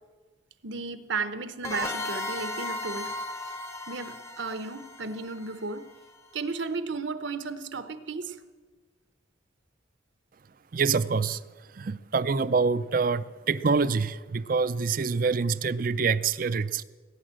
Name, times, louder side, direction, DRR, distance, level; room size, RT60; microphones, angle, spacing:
voice 1, 0.6-3.5 3.9-5.9 6.3-8.4, right 4 dB, 70° right, 11 dB, 1.0 m, -34 dB
sound 1, 1.6-6.1, left 2 dB, 15° left, 0.7 m, -36 dB
voice 2, 10.7-11.4 11.8-16.8, right 5 dB, 45° right, 16 dB, 0.4 m, -26 dB
18.5 x 9.6 x 7.6 m, 1.4 s
head